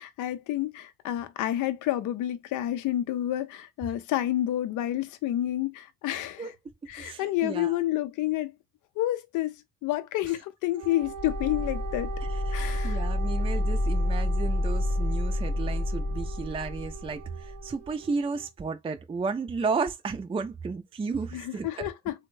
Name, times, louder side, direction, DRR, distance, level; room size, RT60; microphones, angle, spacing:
voice 1, 0.0-6.5 6.9-8.5 9.0-9.5 9.8-12.1 12.5-13.0 21.3-22.1, left 13 dB, 85° left, 0.5 m, -29 dB
voice 2, 7.0-7.8 12.3-21.9, right 4 dB, 20° right, 0.4 m, -33 dB
Wind instrument woodwind instrument, 10.8-18.5, right 7 dB, 70° right, 0.5 m, -42 dB
sound 1, 11.0-17.7, left 1 dB, 25° left, 0.8 m, -29 dB
3.4 x 2.1 x 3.1 m
cardioid pair, 90°, 30 cm